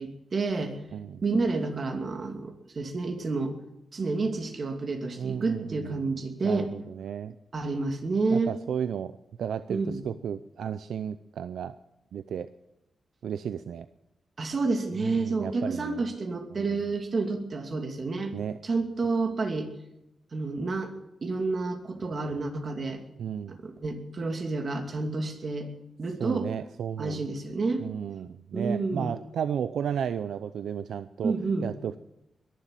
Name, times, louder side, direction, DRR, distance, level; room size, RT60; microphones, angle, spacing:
voice 1, 0.0-0.8 1.2-3.5 3.9-6.7 7.5-8.6 9.7-10.0 14.4-18.3 18.6-19.7 20.3-20.9 21.2-23.0 23.5-25.7 26.0-26.5 27.0-27.9 28.5-29.1 31.2-31.7, right 3 dB, 50° right, 4 dB, 2.7 m, -29 dB
voice 2, 0.9-1.2 5.2-7.4 8.3-11.8 12.1-12.5 13.2-13.9 15.0-16.1 16.5-16.9 18.3-18.6 23.2-23.6 26.2-27.2 27.8-31.3 31.6-32.0, right 8 dB, 85° right, 12 dB, 0.5 m, -34 dB
21.5 x 7.5 x 9.0 m, 0.87 s
cardioid pair, 80°, 0 cm